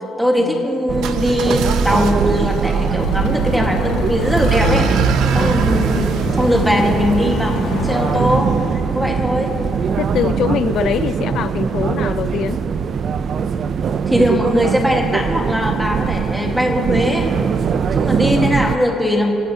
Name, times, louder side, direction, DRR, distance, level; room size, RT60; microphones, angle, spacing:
voice 1, 0.2-4.9 5.3-6.1 6.3-9.5 14.1-17.3 17.9-19.3, equal, ahead, 0 dB, 1.4 m, -20 dB
sound 1, 0.9-18.8, right 6 dB, 35° right, 0.4 m, -21 dB
sound 2, 0.9-7.8, right 6 dB, 65° right, 0.8 m, -23 dB
sound 3, 3.0-8.4, left 3 dB, 90° left, 1.6 m, -26 dB
voice 2, 9.9-12.6, left 9 dB, 50° left, 12 dB, 0.5 m, -23 dB
24.0 x 16.0 x 2.8 m, 2.8 s
cardioid pair, 175°, 0 cm